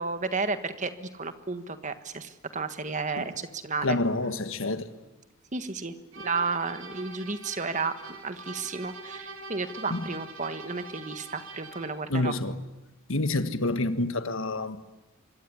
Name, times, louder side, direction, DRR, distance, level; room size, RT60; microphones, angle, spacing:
voice 1, 0.0-4.0 5.5-5.9 6.2-7.9 8.2-12.3, right 4 dB, 35° right, 1.5 m, -32 dB
voice 2, 3.8-4.9 9.9-10.1 12.1-12.5 13.1-14.8, left 2 dB, 70° left, 1.6 m, -28 dB
sound 1, 6.1-12.1, right 3 dB, 65° right, 3.7 m, -44 dB
25.5 x 23.0 x 9.8 m
head